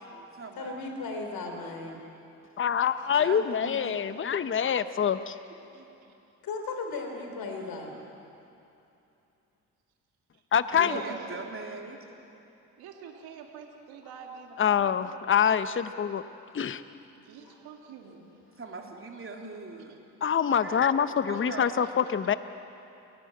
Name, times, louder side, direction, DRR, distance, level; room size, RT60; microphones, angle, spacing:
voice 1, 0.0-0.8 2.0-2.1 3.1-3.9 5.7-5.9 10.7-12.0 18.6-19.9 20.5-20.9 21.3-21.9, right 3 dB, 35° right, 1 dB, 3.5 m, -41 dB
voice 2, 0.6-2.0 6.4-7.9 17.4-17.6, left 3 dB, 65° left, 3 dB, 3.8 m, -36 dB
voice 3, 2.6-5.4 10.5-11.0 14.6-16.2 16.5-16.8 20.2-22.3, left 8 dB, 30° left, 12 dB, 0.9 m, -25 dB
voice 4, 10.8-11.3 12.8-15.3 17.2-18.3, right 7 dB, 70° right, 1 dB, 2.3 m, -45 dB
29.5 x 11.5 x 7.8 m, 2.7 s
hypercardioid pair, 50°, 38 cm